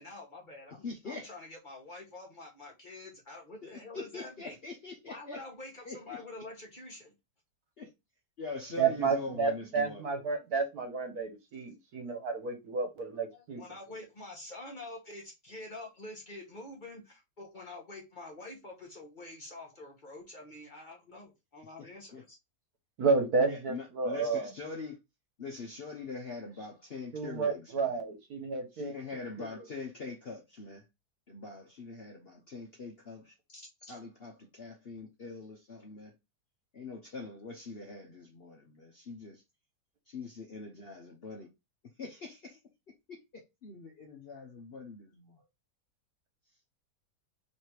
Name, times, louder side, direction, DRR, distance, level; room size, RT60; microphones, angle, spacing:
voice 1, 0.0-4.5 5.0-7.1 13.3-22.4 33.5-34.0, left 2 dB, 30° left, 1.2 m, -47 dB
voice 2, 0.8-1.3 3.6-5.4 5.8-6.2 7.8-7.9 8.4-10.1 21.8-21.9 22.1-22.2 23.5-25.0 25.4-27.9 28.7-30.9 31.3-33.3 33.9-36.1 36.7-39.4 40.1-41.5 42.0-42.6 43.1-45.4, left 4 dB, 50° left, 0.8 m, -43 dB
voice 3, 8.8-13.6 23.0-24.5 27.1-28.9 29.4-29.6, right 4 dB, 65° right, 1.4 m, -31 dB
3.3 x 3.2 x 4.4 m
omnidirectional pair, 1.8 m